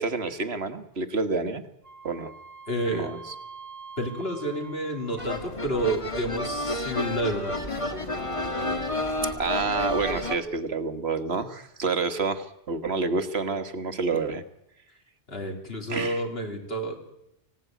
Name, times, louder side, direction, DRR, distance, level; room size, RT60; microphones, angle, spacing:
voice 1, 0.0-1.6 2.0-2.3 2.9-3.2 9.4-14.4 15.9-16.2, right 4 dB, 60° right, 10 dB, 1.7 m, -28 dB
Wind instrument woodwind instrument, 1.8-5.7, right 5 dB, 30° right, 1.8 m, -45 dB
voice 2, 2.7-3.1 4.0-9.0 15.3-16.9, right 1 dB, 55° left, 3 dB, 3.9 m, -30 dB
sound 1, 5.2-10.4, left 1 dB, 25° left, 1.8 m, -30 dB
25.0 x 17.0 x 9.3 m, 0.85 s
omnidirectional pair, 1.2 m